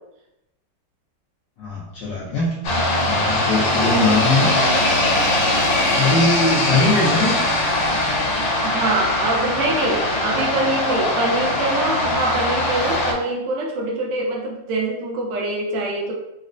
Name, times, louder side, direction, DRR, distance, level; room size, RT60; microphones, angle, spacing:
voice 1, 1.6-2.5 3.1-4.6 5.9-7.4, left 2 dB, 70° left, -7 dB, 1.1 m, -21 dB
sound 1, 2.6-13.1, left 1 dB, 85° left, 1.6 m, -21 dB
voice 2, 3.8-4.1 5.6-5.8 8.6-16.1, right 2 dB, 70° right, -1 dB, 1.1 m, -24 dB
4.1 x 2.0 x 2.5 m, 0.89 s
omnidirectional pair, 2.4 m